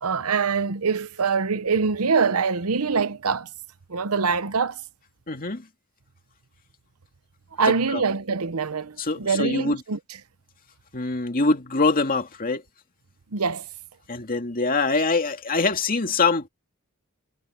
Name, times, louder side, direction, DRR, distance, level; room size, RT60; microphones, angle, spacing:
voice 1, 0.0-3.5 3.9-4.8 7.6-10.0 13.3-13.6, right 5 dB, 75° right, 0.9 m, -24 dB
voice 2, 5.3-5.6 7.9-8.0 9.0-9.8 10.9-12.6 14.1-16.5, left 3 dB, 40° left, 2.3 m, -24 dB
head